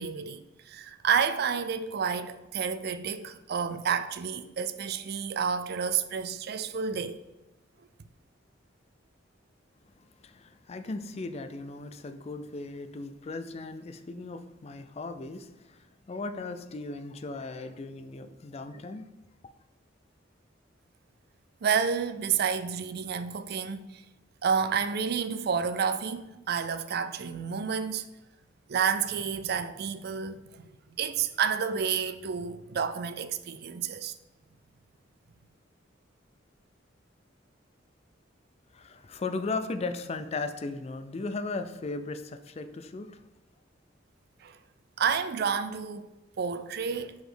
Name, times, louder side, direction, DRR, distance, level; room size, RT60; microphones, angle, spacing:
voice 1, 0.0-7.2 21.6-24.0 24.4-28.1 28.7-30.6 31.0-34.1 44.4-44.6 45.0-46.1 46.4-47.2, right 6 dB, 55° right, 0.4 m, -30 dB
voice 2, 9.9-19.1 38.7-43.2, left 3 dB, 35° left, 0.4 m, -37 dB
5.0 x 4.0 x 5.0 m
head